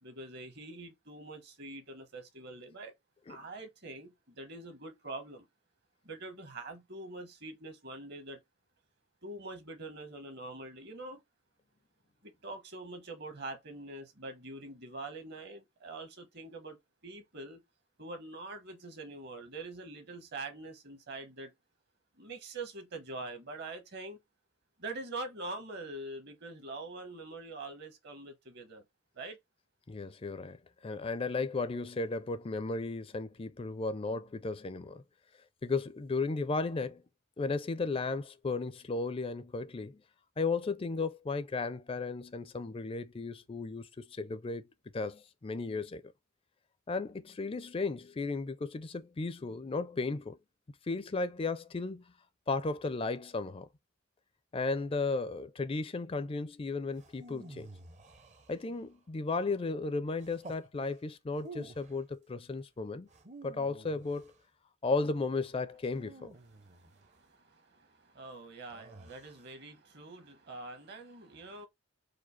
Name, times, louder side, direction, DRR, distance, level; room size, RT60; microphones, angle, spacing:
voice 1, 0.0-2.9 3.3-5.5 6.0-8.4 9.2-11.2 12.2-17.6 18.0-21.5 22.2-24.2 24.8-28.8 29.1-29.4 66.6-71.7, right 2 dB, 55° right, 1.1 m, -44 dB
voice 2, 29.9-35.0 35.6-37.0 37.4-40.0 40.4-46.0 46.9-50.4 50.9-52.0 52.5-53.7 54.5-57.7 58.5-63.1 63.4-64.3 64.8-66.3, left 3 dB, 25° left, 0.4 m, -35 dB
sound 1, 56.9-58.9 60.2-60.7 61.3-62.0 63.1-64.4 65.9-67.1 68.7-69.5, right 2 dB, 35° right, 0.6 m, -51 dB
4.8 x 2.3 x 4.0 m
head